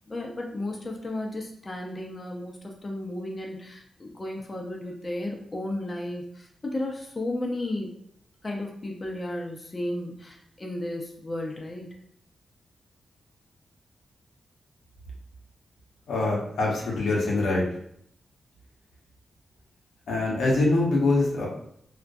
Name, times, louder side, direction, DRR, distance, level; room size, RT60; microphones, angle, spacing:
voice 1, 0.1-7.9 8.4-11.9, left 1 dB, 35° left, 0 dB, 0.4 m, -34 dB
voice 2, 16.1-17.7 20.1-21.5, left 2 dB, 90° left, -3 dB, 0.6 m, -24 dB
2.2 x 2.1 x 2.5 m, 0.69 s
cardioid pair, 60°, 0 cm